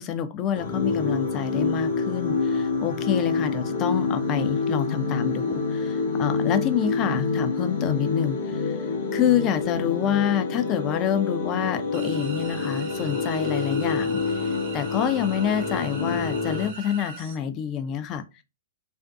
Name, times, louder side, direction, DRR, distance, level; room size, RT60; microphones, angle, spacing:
voice 1, 0.0-8.8 9.1-18.4, left 9 dB, 35° left, 0.4 m, -27 dB
sound 1, 0.5-16.7, left 4 dB, 65° left, 0.7 m, -27 dB
sound 2, 11.9-17.4, right 4 dB, 60° right, 0.7 m, -41 dB
2.5 x 2.5 x 2.2 m
hypercardioid pair, 125°, 0 cm